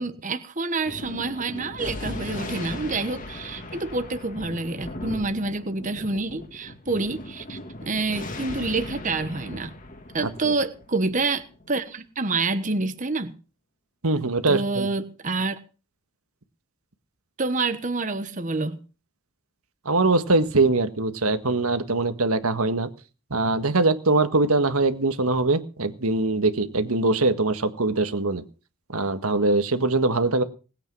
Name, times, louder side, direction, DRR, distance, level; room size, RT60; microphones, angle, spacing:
voice 1, 0.0-7.6 7.8-9.7 10.1-13.3 14.5-15.6 17.4-18.8, right 3 dB, 35° right, 1.2 m, -27 dB
Thunder, 0.8-11.7, left 1 dB, 35° left, 1.8 m, -38 dB
voice 2, 10.2-10.5 14.0-14.9 19.9-22.9 23.3-28.4 28.9-30.4, right 2 dB, 80° right, 1.7 m, -22 dB
20.0 x 8.8 x 6.2 m
head